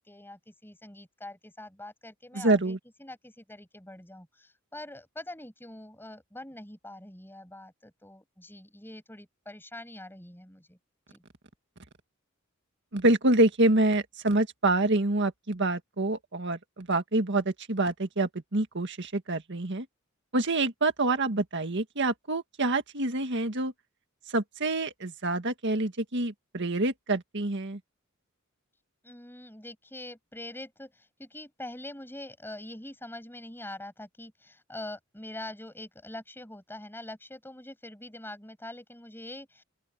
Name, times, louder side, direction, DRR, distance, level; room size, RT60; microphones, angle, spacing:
voice 1, 0.0-10.8 11.1-11.2 29.0-39.6, left 1 dB, 10° left, 6.8 m, -44 dB
voice 2, 2.3-2.8 12.9-19.9 20.3-23.7 24.3-27.8, right 2 dB, 60° right, 1.8 m, -27 dB
open air
head